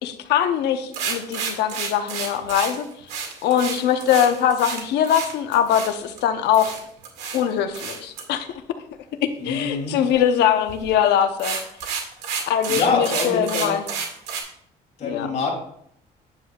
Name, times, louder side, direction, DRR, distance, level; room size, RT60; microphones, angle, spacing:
voice 1, 0.0-2.9 3.4-6.8 7.3-8.5 9.2-11.6 12.5-13.8 15.0-15.3, left 9 dB, 80° left, 8 dB, 0.9 m, -22 dB
sound 1, 0.9-6.2 6.5-7.4 7.7-8.2 10.7-10.9 11.2-14.4, right 6 dB, 85° right, 2.1 m, -30 dB
voice 2, 9.4-9.9 12.7-13.8 15.0-15.5, left 4 dB, 45° left, -2 dB, 3.0 m, -25 dB
9.7 x 7.6 x 2.4 m, 0.69 s
cardioid pair, 110°, 17 cm